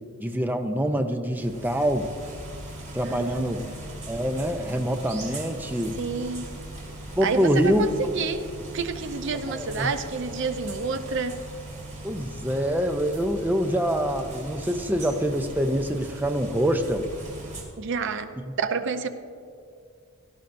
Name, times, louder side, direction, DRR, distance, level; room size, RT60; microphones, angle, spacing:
voice 1, 0.2-2.1 2.9-3.6 4.1-6.0 7.1-7.9 9.5-9.9 12.0-17.1, equal, 10° right, 6 dB, 0.5 m, -25 dB
sound 1, 1.3-17.6, right 2 dB, 35° right, 2.7 m, -39 dB
voice 2, 3.0-3.7 6.0-6.5 7.2-8.5 8.7-11.3 17.8-18.3 18.6-19.1, right 4 dB, 60° right, 9 dB, 0.6 m, -29 dB
17.5 x 13.0 x 2.6 m, 2.3 s
head